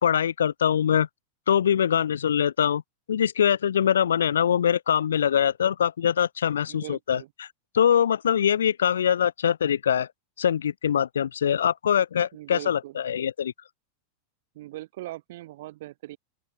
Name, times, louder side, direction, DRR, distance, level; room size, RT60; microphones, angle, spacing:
voice 1, 0.0-1.1 1.5-2.8 3.1-7.5 7.7-10.1 10.4-13.5, left 8 dB, 65° left, 0.8 m, -23 dB
voice 2, 6.7-7.3 12.3-13.0 14.5-16.2, right 16 dB, 55° right, 7.4 m, -40 dB
open air
figure-of-eight pair, 90°, 0 cm